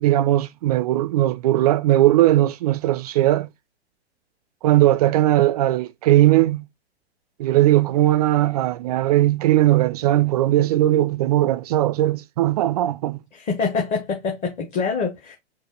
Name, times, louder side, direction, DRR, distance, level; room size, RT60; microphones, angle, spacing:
voice 1, 0.0-3.5 4.6-6.6 7.4-13.2, right 14 dB, 35° right, 0.4 m, -18 dB
voice 2, 13.3-15.3, left 5 dB, 20° left, 1.1 m, -25 dB
5.2 x 2.5 x 3.7 m
hypercardioid pair, 115°, 33 cm